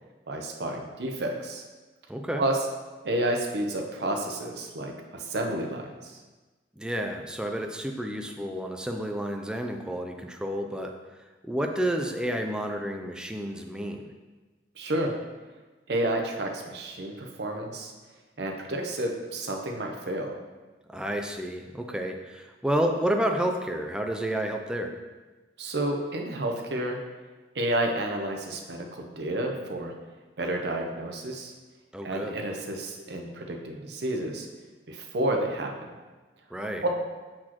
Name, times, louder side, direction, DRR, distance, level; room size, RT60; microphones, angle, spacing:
voice 1, 0.3-1.6 2.4-2.6 3.0-5.9 14.8-15.1 15.9-17.9 18.4-20.3 25.6-27.0 27.5-29.9 30.4-31.5 32.0-34.5 34.9-35.7 36.8-36.9, right 1 dB, 65° right, 2 dB, 0.7 m, -30 dB
voice 2, 2.1-2.4 6.8-10.9 11.4-14.0 20.9-24.9 31.9-32.3 36.5-36.8, equal, 5° right, 3 dB, 0.4 m, -30 dB
7.5 x 4.2 x 2.9 m, 1.3 s
head